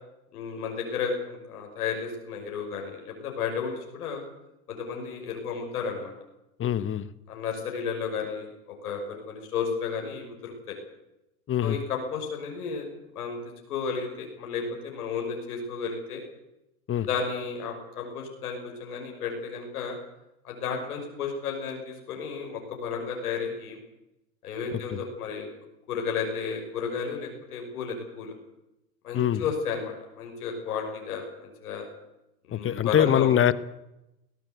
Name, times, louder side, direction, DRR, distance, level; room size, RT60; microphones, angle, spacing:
voice 1, 0.3-4.2 4.7-6.1 7.3-10.8 11.6-12.9 13.1-13.4 13.7-16.2 17.1-20.0 20.4-23.8 24.4-25.5 25.9-28.3 29.0-31.9 32.4-33.3, left 6 dB, 85° left, 2 dB, 6.1 m, -33 dB
voice 2, 6.6-7.1 11.5-11.8 16.9-17.1 24.9-25.0 29.1-29.4 32.5-33.5, left 10 dB, 30° left, 16 dB, 1.2 m, -23 dB
21.5 x 17.0 x 8.2 m, 0.92 s
hypercardioid pair, 100°, 44 cm